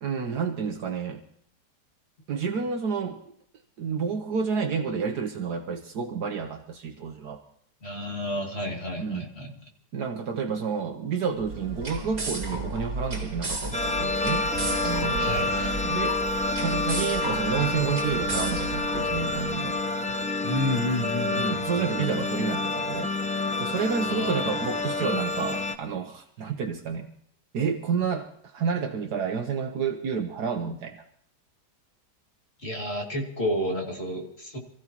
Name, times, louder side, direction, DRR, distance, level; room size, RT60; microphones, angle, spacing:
voice 1, 0.0-1.2 2.3-3.2 3.8-7.4 9.0-9.3 9.9-14.5 14.8-15.4 15.8-16.2 16.6-19.8 21.3-23.1 23.6-27.1 27.5-31.0, right 6 dB, 70° right, 4 dB, 1.6 m, -30 dB
voice 2, 7.8-9.5 15.2-15.8 20.4-21.7 22.0-22.1 24.0-24.6 32.6-34.6, left 1 dB, 40° left, 0 dB, 2.8 m, -31 dB
sound 1, 11.4-19.5, right 2 dB, 45° right, 2.9 m, -34 dB
sound 2, 13.7-25.7, left 2 dB, 10° left, 0.3 m, -28 dB
Drum, 14.5-16.0 17.1-20.1, left 1 dB, 65° left, 5.2 m, -41 dB
27.0 x 15.0 x 2.9 m, 0.67 s
omnidirectional pair, 1.8 m